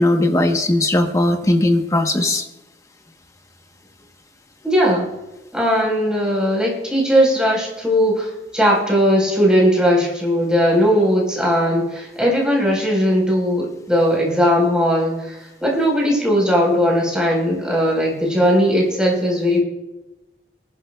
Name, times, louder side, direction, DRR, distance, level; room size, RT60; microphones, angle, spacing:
voice 1, 0.0-2.4, left 1 dB, 20° left, 5 dB, 1.0 m, -18 dB
voice 2, 4.6-5.1 5.5-19.6, equal, 5° right, -2 dB, 4.2 m, -18 dB
23.5 x 12.0 x 2.3 m, 0.98 s
head